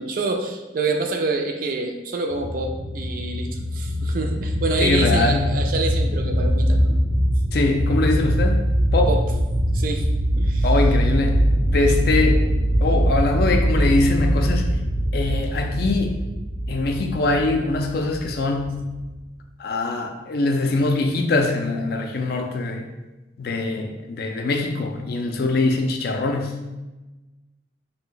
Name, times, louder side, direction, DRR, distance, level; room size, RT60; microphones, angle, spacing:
voice 1, 0.0-7.0 9.1-9.2 9.7-10.1 10.3-10.7, right 3 dB, 50° right, 3 dB, 0.3 m, -27 dB
sound 1, 2.3-19.3, equal, 80° right, 0.7 m, -22 dB
voice 2, 4.8-5.6 7.5-8.7 8.9-9.1 10.6-12.4 12.8-14.8 15.1-16.2 16.7-18.9 19.6-22.9 23.4-26.6, left 3 dB, 55° left, 3 dB, 0.4 m, -23 dB
2.6 x 2.1 x 3.7 m, 1.1 s
head